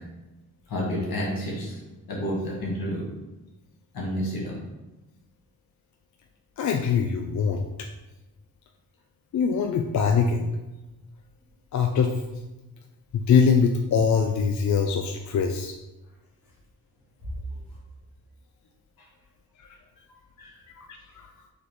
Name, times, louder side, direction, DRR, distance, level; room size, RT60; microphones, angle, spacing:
voice 1, 0.7-1.8 2.1-3.0 3.9-4.5 20.4-20.6, equal, 80° left, -4 dB, 1.5 m, -30 dB
voice 2, 6.6-7.6 9.3-10.5 11.7-12.2 13.1-15.7 20.8-21.3, left 6 dB, 55° left, 4 dB, 0.4 m, -23 dB
3.9 x 3.0 x 3.6 m, 1.0 s
cardioid pair, 55°, 35 cm